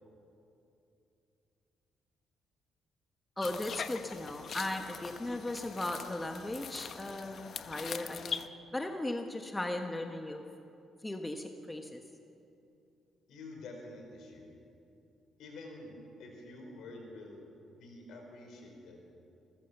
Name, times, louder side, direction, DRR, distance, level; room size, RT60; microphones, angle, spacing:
sound 1, 3.4-8.5, left 7 dB, 55° left, 0.8 m, -42 dB
voice 1, 3.4-8.4 8.7-10.4 11.0-12.0, left 1 dB, 15° left, 4 dB, 1.3 m, -37 dB
voice 2, 13.3-14.5 15.4-17.5 17.8-19.0, left 2 dB, 75° left, 2 dB, 5.0 m, -48 dB
27.5 x 14.5 x 7.1 m, 2.7 s
cardioid pair, 90°, 0 cm